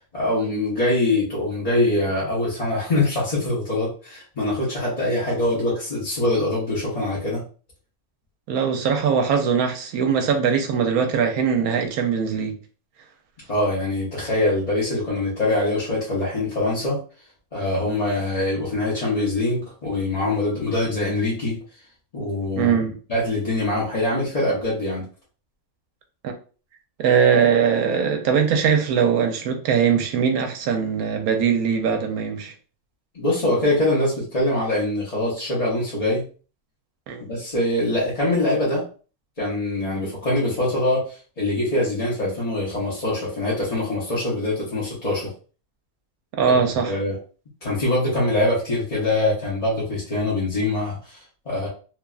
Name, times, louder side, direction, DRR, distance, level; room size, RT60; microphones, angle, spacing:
voice 1, 0.1-7.4 13.5-17.0 17.5-21.6 22.1-22.7 23.1-25.0 33.1-36.2 37.3-38.8 39.4-45.3 46.4-47.1 47.6-51.7, left 2 dB, 35° left, 0.7 m, -23 dB
voice 2, 8.5-12.6 22.6-23.0 26.2-26.3 27.0-32.5 37.1-37.3 46.4-46.9, right 7 dB, 80° right, 1.1 m, -21 dB
3.0 x 2.3 x 2.3 m
omnidirectional pair, 1.6 m